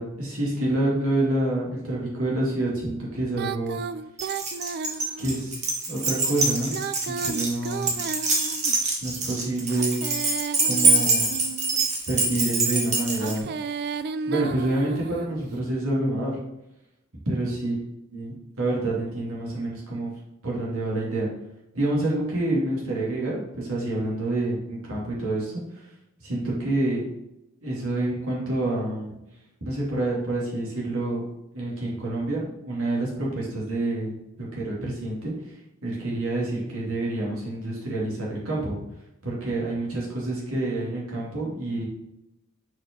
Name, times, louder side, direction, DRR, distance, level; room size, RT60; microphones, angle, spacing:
voice 1, 0.0-3.8 5.2-6.7 7.0-8.0 9.0-10.0 10.6-11.3 12.1-13.5 14.2-16.4 17.3-17.8 18.1-20.1 20.4-21.3 21.7-25.9 26.2-27.0 27.6-29.2 29.6-31.2 31.5-35.5 35.8-38.8 39.2-41.9, right 2 dB, 70° right, -5 dB, 2.6 m, -27 dB
Female singing, 3.3-5.5 6.6-8.9 9.7-11.9 13.1-15.4, right 5 dB, 50° right, 0.3 m, -34 dB
Keys jangling, 4.2-13.4, right 3 dB, 35° right, 1.3 m, -25 dB
6.0 x 4.8 x 4.5 m, 0.88 s
head